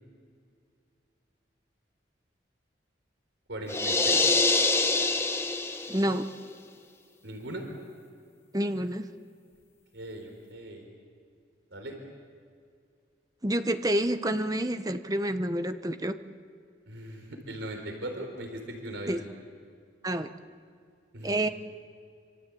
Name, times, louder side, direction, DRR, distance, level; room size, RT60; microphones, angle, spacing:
voice 1, 3.5-4.3 7.2-7.6 9.9-10.8 11.7-12.0 16.9-19.3 21.1-21.4, right 1 dB, 75° right, 3 dB, 4.1 m, -39 dB
sound 1, 3.7-6.2, left 3 dB, 15° left, 1.2 m, -25 dB
voice 2, 5.9-6.3 8.5-9.0 13.4-16.2 19.1-19.2 20.0-20.3 21.2-21.5, right 1 dB, 20° right, 9 dB, 1.0 m, -28 dB
26.5 x 26.0 x 8.5 m, 2.3 s
head